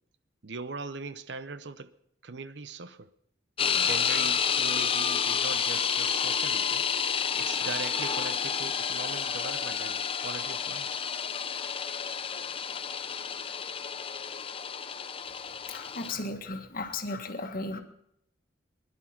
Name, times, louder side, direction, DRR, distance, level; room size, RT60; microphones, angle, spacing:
voice 1, 0.4-1.9 2.2-3.1 3.7-6.9 7.4-10.9, right 4 dB, 70° right, 0.7 m, -40 dB
sound 1, 3.6-16.1, left 7 dB, 30° left, 0.6 m, -30 dB
voice 2, 15.7-17.8, left 2 dB, 55° left, 1.6 m, -35 dB
21.0 x 11.0 x 5.8 m
head